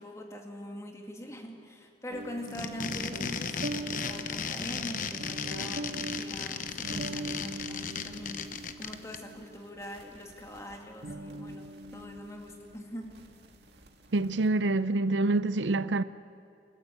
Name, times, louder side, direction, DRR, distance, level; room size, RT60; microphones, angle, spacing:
voice 1, 0.0-13.2, equal, 15° left, 2.4 m, -43 dB
sound 1, 2.1-14.7, right 2 dB, 70° right, 1.9 m, -42 dB
sound 2, 2.4-9.2, left 6 dB, 45° left, 1.0 m, -35 dB
voice 2, 14.1-16.0, right 2 dB, 90° right, 0.6 m, -26 dB
29.0 x 14.5 x 8.3 m
head